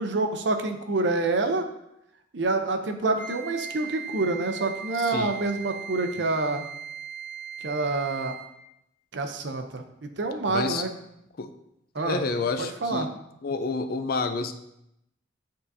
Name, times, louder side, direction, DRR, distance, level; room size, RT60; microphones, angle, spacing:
voice 1, 0.0-1.6 2.3-6.6 7.6-8.4 9.1-10.9 11.9-12.2 12.8-13.1, right 3 dB, 65° right, 6 dB, 0.6 m, -27 dB
Wind instrument woodwind instrument, 3.2-8.5, right 7 dB, 15° left, 1.5 m, -39 dB
voice 2, 4.9-5.4 6.2-6.3 10.5-10.8 11.4-11.5 12.0-13.1 13.4-14.5, left 4 dB, 50° left, 9 dB, 0.4 m, -29 dB
9.3 x 3.8 x 2.7 m, 0.82 s
head